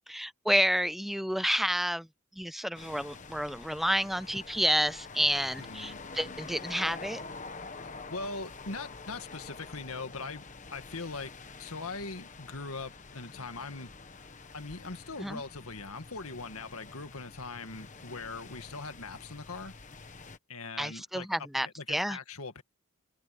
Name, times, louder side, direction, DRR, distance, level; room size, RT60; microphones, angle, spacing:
voice 1, 0.1-2.1 2.4-7.2 15.2-15.4 20.8-22.2, equal, ahead, 0.4 m, -30 dB
sound 1, 2.7-20.4, left 4 dB, 35° left, 1.2 m, -47 dB
voice 2, 5.6-6.0 8.1-10.4 10.7-11.3 11.6-13.9 14.5-19.7 20.5-21.3 21.6-22.6, left 3 dB, 75° left, 1.9 m, -41 dB
head